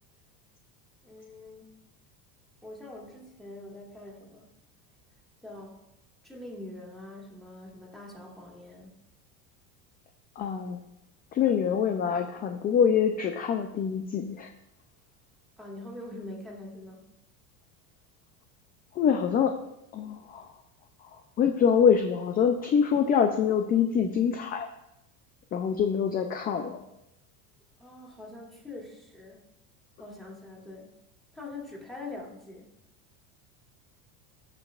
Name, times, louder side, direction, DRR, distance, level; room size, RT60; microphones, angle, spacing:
voice 1, 1.0-1.7 2.6-4.5 5.4-5.8 6.2-9.0 15.6-17.0 27.8-29.4 30.0-30.9 31.3-32.7, left 2 dB, ahead, -3 dB, 2.4 m, -44 dB
voice 2, 10.4-10.8 11.3-14.5 18.9-19.6 19.9-20.5 21.0-24.7 25.5-26.9, left 7 dB, 25° left, 6 dB, 0.3 m, -25 dB
16.5 x 5.5 x 2.4 m, 0.87 s
supercardioid pair, 125°, 43 cm